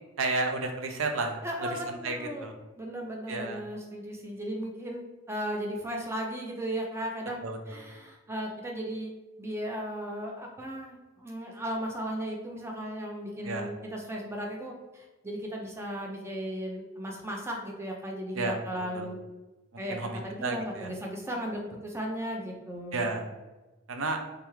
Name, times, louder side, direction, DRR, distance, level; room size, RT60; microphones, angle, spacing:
voice 1, 0.2-2.5 3.3-3.6 7.4-7.8 13.4-13.7 18.4-19.1 19.9-20.1 20.4-20.9 22.9-23.3 23.9-24.2, right 3 dB, 70° right, 5 dB, 0.6 m, -32 dB
voice 2, 1.4-2.5 2.8-9.1 9.4-19.2 19.8-20.0 20.2-23.1, equal, 10° right, 0 dB, 0.6 m, -36 dB
3.6 x 3.4 x 3.1 m, 1.1 s
head